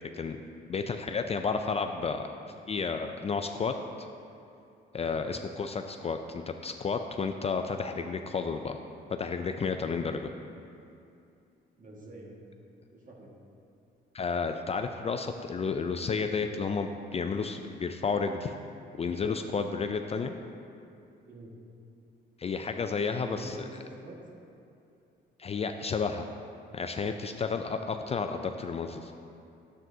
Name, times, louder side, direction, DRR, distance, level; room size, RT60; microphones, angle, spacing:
voice 1, 0.7-2.2 2.7-3.7 4.9-8.8 9.1-10.3 14.1-18.5 19.0-20.3 22.4-23.6 25.4-26.3 26.7-29.1, left 5 dB, 30° left, 6 dB, 0.3 m, -31 dB
voice 2, 11.8-12.4 12.9-13.3 21.3-21.5 23.1-24.2, right 1 dB, 40° right, -2 dB, 1.6 m, -47 dB
9.8 x 7.5 x 2.7 m, 2.6 s
cardioid pair, 90°, 20 cm